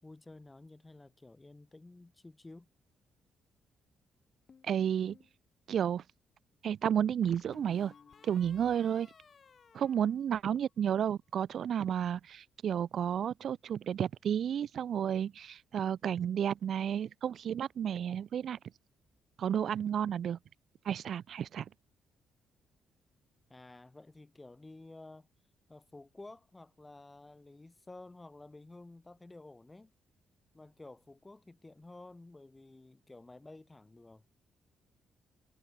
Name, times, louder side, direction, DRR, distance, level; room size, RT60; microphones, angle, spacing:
voice 1, 0.0-2.7 23.5-25.3 25.7-29.9 30.5-34.3, left 2 dB, 15° left, 6.6 m, -52 dB
sound 1, 4.5-5.3 7.2-10.8, left 6 dB, 35° left, 7.5 m, -59 dB
voice 2, 4.6-5.2 5.7-6.0 6.6-7.9 8.2-9.1 9.7-18.6 19.4-20.4 20.8-21.7, right 9 dB, 55° right, 2.4 m, -32 dB
cardioid pair, 145°, 0 cm